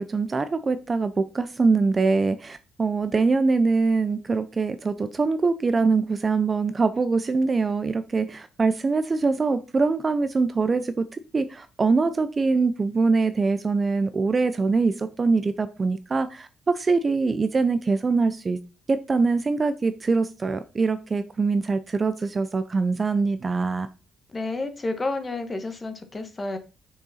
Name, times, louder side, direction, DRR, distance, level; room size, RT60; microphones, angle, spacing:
voice 1, 0.0-18.6 18.9-23.9, right 4 dB, 25° right, 11 dB, 0.5 m, -23 dB
voice 2, 24.3-26.6, left 2 dB, 20° left, 8 dB, 1.2 m, -30 dB
6.6 x 6.3 x 4.1 m, 0.33 s
cardioid pair, 145°, 0 cm